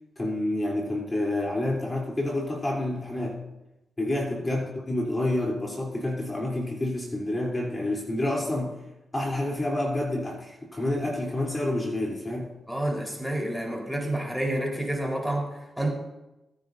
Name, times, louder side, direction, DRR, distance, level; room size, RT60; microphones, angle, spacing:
voice 1, 0.2-3.4 4.0-8.7 9.1-12.5, left 1 dB, 30° left, -2 dB, 3.4 m, -28 dB
voice 2, 12.7-15.9, right 1 dB, ahead, -1 dB, 4.2 m, -29 dB
20.0 x 9.9 x 2.7 m, 0.96 s
cardioid pair, 60°, 0 cm